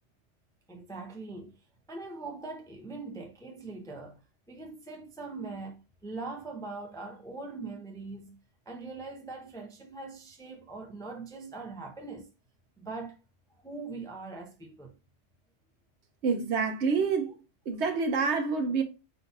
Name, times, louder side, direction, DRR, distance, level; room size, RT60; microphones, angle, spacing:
voice 1, 0.7-1.6 1.9-4.2 4.5-8.4 8.7-12.3 12.8-13.2 13.6-15.0, right 3 dB, 5° left, 0.5 m, -41 dB
voice 2, 16.2-17.4 17.7-18.8, right 5 dB, 70° right, 1.0 m, -27 dB
4.2 x 2.6 x 3.9 m
omnidirectional pair, 1.2 m